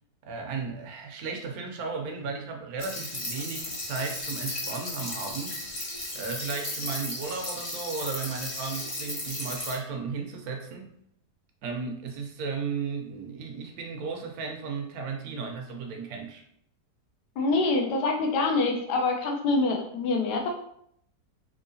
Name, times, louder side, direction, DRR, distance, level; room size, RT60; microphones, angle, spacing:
voice 1, 0.2-10.9 11.6-16.4, right 5 dB, 70° right, 3 dB, 1.0 m, -35 dB
sound 1, 2.8-9.7, left 1 dB, 35° left, 0.5 m, -35 dB
voice 2, 17.4-20.5, left 3 dB, 75° left, 2 dB, 1.3 m, -25 dB
3.6 x 2.8 x 2.7 m, 0.69 s
omnidirectional pair, 1.8 m